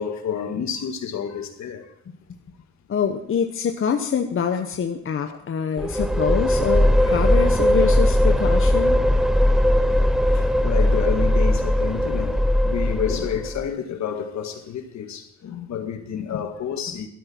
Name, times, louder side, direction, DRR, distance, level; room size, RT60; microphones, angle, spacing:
voice 1, 0.0-1.9 5.3-5.4 6.8-7.0 8.9-9.0 10.0-17.1, left 7 dB, 65° left, 1.8 m, -30 dB
voice 2, 2.9-9.0 16.3-16.4, left 7 dB, 45° left, 1.0 m, -25 dB
sound 1, 5.8-13.6, left 1 dB, ahead, 0.6 m, -19 dB
13.0 x 12.5 x 4.4 m
cardioid pair, 90°, 30 cm